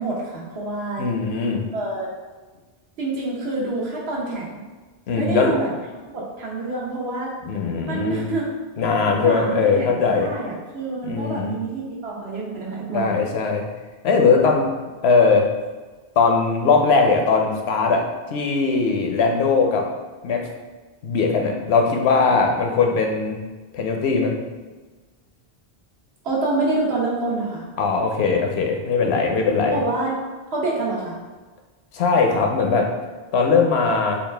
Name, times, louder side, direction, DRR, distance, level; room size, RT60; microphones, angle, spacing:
voice 1, 0.0-1.1 1.7-2.1 3.0-4.6 5.2-5.7 6.1-7.3 7.9-8.4 9.2-13.1 26.2-27.7 29.7-30.2 30.5-31.1, right 3 dB, 85° right, -4 dB, 1.2 m, -27 dB
voice 2, 1.0-1.6 5.1-5.6 7.4-8.3 8.8-10.3 11.0-11.6 12.9-13.6 14.0-14.7 15.0-15.5 16.2-18.0 18.3-19.9 20.2-20.5 21.0-23.4 23.7-24.3 27.8-29.8 31.9-32.9 33.3-34.2, left 4 dB, 85° left, 2 dB, 0.9 m, -20 dB
4.1 x 2.4 x 3.3 m, 1.3 s
omnidirectional pair, 1.0 m